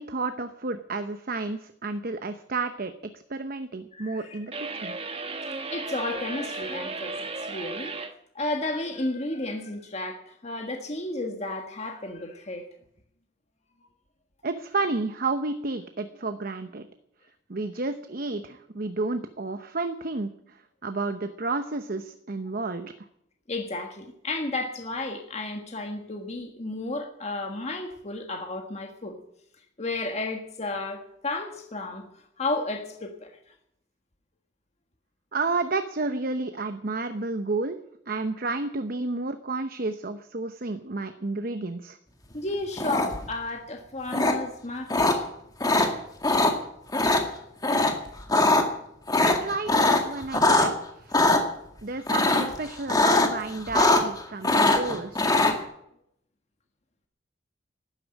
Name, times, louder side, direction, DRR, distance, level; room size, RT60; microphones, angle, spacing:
voice 1, 0.0-2.9 3.3-4.9 14.4-16.9 17.5-20.3 20.8-22.9 35.3-37.8 38.1-42.0 49.2-50.8 51.0-51.2 51.8-55.3, right 3 dB, 50° right, 9 dB, 0.9 m, -31 dB
voice 2, 3.9-4.7 5.7-8.0 8.3-12.7 23.5-29.2 29.8-33.4 42.3-45.2, left 2 dB, 35° left, 3 dB, 1.6 m, -33 dB
sound 1, 4.5-8.1, right 3 dB, 30° right, 1.2 m, -35 dB
sound 2, 42.8-43.3 44.1-44.3 44.9-45.1 45.6-45.9 46.2-46.5 46.9-47.2 47.6-47.9 48.2-48.6 49.1-50.7 51.1-51.4 52.1-52.5 52.9-53.3 53.6-54.2 54.4-55.5, left 2 dB, 20° left, 2.0 m, -21 dB
12.5 x 9.9 x 10.0 m, 0.74 s
head